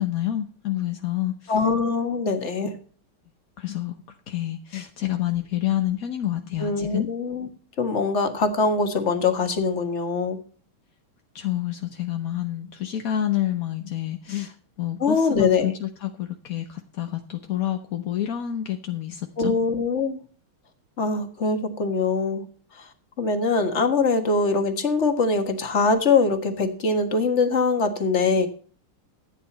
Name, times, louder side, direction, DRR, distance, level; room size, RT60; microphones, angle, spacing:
voice 1, 0.0-1.5 3.6-7.1 11.3-19.5, left 12 dB, 55° left, 5 dB, 1.0 m, -28 dB
voice 2, 1.5-2.7 6.6-7.5 7.8-10.4 15.0-15.7 19.4-20.2 21.0-22.4 22.8-22.9 23.2-28.5, left 4 dB, 35° left, 6 dB, 1.7 m, -23 dB
14.0 x 9.3 x 4.2 m, 0.42 s
omnidirectional pair, 2.4 m